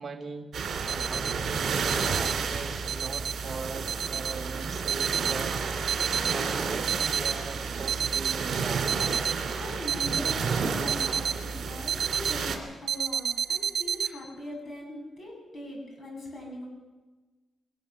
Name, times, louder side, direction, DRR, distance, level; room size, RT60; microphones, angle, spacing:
voice 1, 0.0-8.9, right 4 dB, 30° right, 3 dB, 1.9 m, -41 dB
sound 1, 0.5-12.6, right 5 dB, 60° right, 2.8 m, -31 dB
sound 2, 0.9-1.3 1.9-2.3 2.9-3.3 3.9-4.3 4.9-5.3 5.9-6.3 6.9-7.3 7.9-8.3 8.9-9.3 9.9-10.3 10.9-11.3 11.9-12.3 12.9-14.1, right 8 dB, 80° right, 1.3 m, -29 dB
voice 2, 9.5-16.7, left 1 dB, 40° left, 0 dB, 7.8 m, -41 dB
20.5 x 20.0 x 6.9 m, 1.3 s
wide cardioid pair, 175°, 0 cm